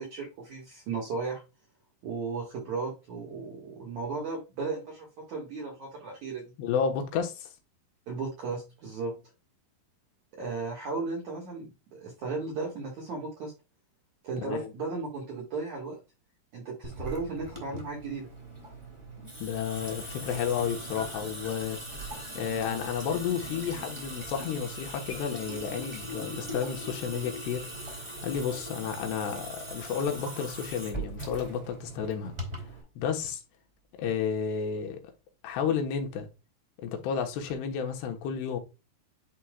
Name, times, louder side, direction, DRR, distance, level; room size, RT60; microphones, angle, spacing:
voice 1, 0.0-1.4 2.0-6.5 8.1-9.1 10.3-13.5 14.2-16.0 16.5-18.3, right 4 dB, 55° right, 2.5 m, -35 dB
voice 2, 6.6-7.5 14.4-14.7 19.2-21.8 22.3-32.4 33.0-33.4 34.0-35.0 35.4-36.3 36.8-38.6, left 7 dB, 80° left, 3.2 m, -32 dB
Water tap faucet / Sink (filling or washing) / Drip, 16.8-32.8, right 1 dB, 15° right, 1.0 m, -40 dB
10.0 x 4.5 x 2.3 m
omnidirectional pair, 4.8 m